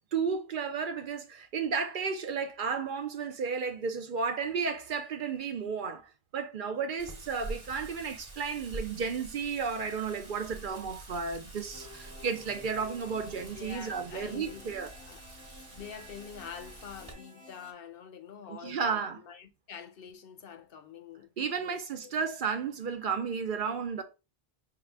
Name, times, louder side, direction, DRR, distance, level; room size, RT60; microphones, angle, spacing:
voice 1, 0.1-14.9 18.5-19.2 21.4-24.0, right 5 dB, 60° right, 0.7 m, -33 dB
Wind, 7.0-17.1, right 2 dB, 35° right, 1.2 m, -47 dB
sound 1, 11.7-17.7, left 1 dB, 10° right, 0.8 m, -52 dB
voice 2, 13.6-14.7 15.0-15.2 15.7-22.1, left 7 dB, 65° left, 0.8 m, -46 dB
5.6 x 2.4 x 3.3 m
omnidirectional pair, 1.1 m